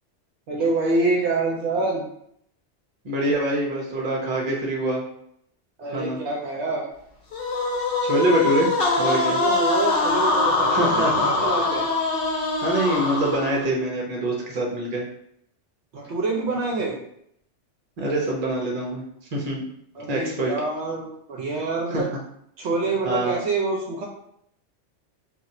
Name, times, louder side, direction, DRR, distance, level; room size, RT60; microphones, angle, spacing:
voice 1, 0.5-2.0 5.8-6.9 9.3-11.9 15.9-17.0 19.9-22.1 22.6-24.0, right 3 dB, 70° right, -1 dB, 0.9 m, -26 dB
voice 2, 3.0-5.0 5.9-6.2 8.0-8.7 9.0-9.4 10.7-11.3 12.6-15.1 18.0-19.0 19.3-19.6 20.1-20.5 21.9-22.1 23.0-23.4, right 1 dB, 40° right, -2 dB, 0.8 m, -24 dB
sound 1, 7.3-13.7, left 3 dB, 55° left, 0.8 m, -23 dB
2.4 x 2.4 x 4.0 m, 0.71 s
omnidirectional pair, 1.2 m